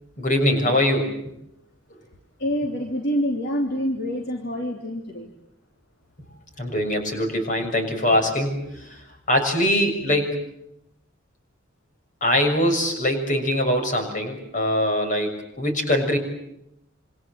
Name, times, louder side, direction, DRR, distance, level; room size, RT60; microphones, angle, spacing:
voice 1, 0.2-1.2 6.6-9.0 9.3-10.4 12.2-16.2, left 1 dB, 40° left, 5 dB, 6.7 m, -22 dB
voice 2, 2.4-5.3, equal, 60° left, 1 dB, 3.3 m, -26 dB
27.5 x 26.0 x 7.7 m, 0.81 s
head